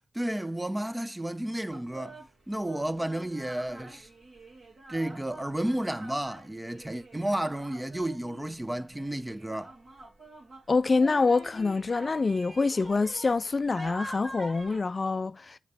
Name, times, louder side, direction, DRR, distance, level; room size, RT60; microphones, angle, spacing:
voice 1, 0.1-2.2 2.5-4.1 4.9-9.7, right 1 dB, 15° right, 0.8 m, -32 dB
sound 1, 1.7-14.8, right 1 dB, 65° right, 2.5 m, -46 dB
voice 2, 10.7-15.6, left 4 dB, 50° left, 0.4 m, -26 dB
7.9 x 4.3 x 3.4 m
cardioid pair, 40°, 0 cm